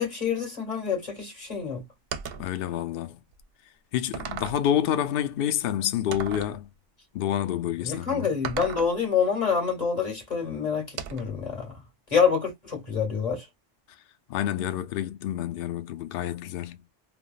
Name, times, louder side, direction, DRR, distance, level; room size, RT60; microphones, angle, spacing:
voice 1, 0.0-1.8 7.8-11.8 12.1-13.4, left 6 dB, 35° left, 1.8 m, -27 dB
sound 1, 2.1-2.5 3.3-3.4 4.1-4.7 6.1-6.6 8.4-8.9 11.0-11.4, right 7 dB, 60° right, 0.7 m, -35 dB
voice 2, 2.4-3.2 3.9-6.7 7.1-8.3 14.3-16.8, left 10 dB, 60° left, 0.7 m, -28 dB
3.4 x 2.1 x 2.4 m
omnidirectional pair, 1.2 m